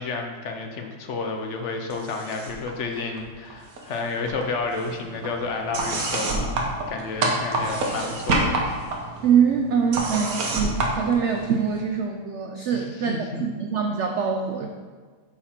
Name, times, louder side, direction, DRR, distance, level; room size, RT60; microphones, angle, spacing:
voice 1, 0.0-8.6 12.7-13.4, left 4 dB, 60° left, 3 dB, 0.8 m, -31 dB
sound 1, 1.9-2.7 3.0-4.0 4.3-11.8, right 2 dB, 65° right, 1.4 m, -28 dB
voice 2, 9.2-13.1 13.4-14.7, right 7 dB, 85° right, 3 dB, 0.6 m, -23 dB
7.4 x 4.2 x 4.3 m, 1.5 s
omnidirectional pair, 1.8 m